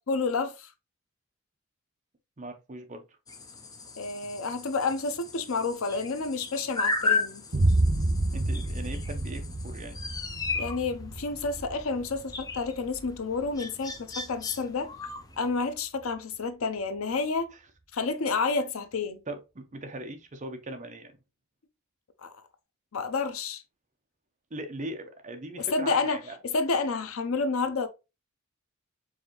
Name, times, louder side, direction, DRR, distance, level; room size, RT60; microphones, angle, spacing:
voice 1, 0.1-0.7 4.0-7.4 10.6-14.9 15.4-17.5 17.9-19.2 22.2-22.4 22.9-23.6 25.6-27.9, left 4 dB, 80° left, 0.6 m, -30 dB
voice 2, 2.4-3.0 8.3-10.0 19.3-21.1 24.5-26.4, right 1 dB, 35° right, 0.7 m, -39 dB
sound 1, 3.3-15.5, left 4 dB, 20° left, 0.5 m, -35 dB
Boom, 7.5-15.4, right 2 dB, 85° right, 1.1 m, -30 dB
4.8 x 2.7 x 2.9 m
head